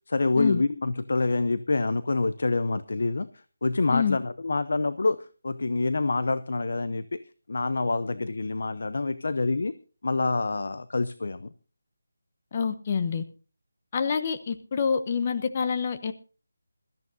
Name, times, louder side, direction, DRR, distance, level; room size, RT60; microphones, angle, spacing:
voice 1, 0.1-3.3 3.6-7.2 7.5-9.7 10.0-11.5, left 3 dB, 55° left, 14 dB, 0.7 m, -26 dB
voice 2, 12.5-13.2 13.9-16.1, left 6 dB, 25° left, 10 dB, 0.9 m, -27 dB
22.0 x 13.5 x 2.7 m, 0.37 s
figure-of-eight pair, 175°, 0 cm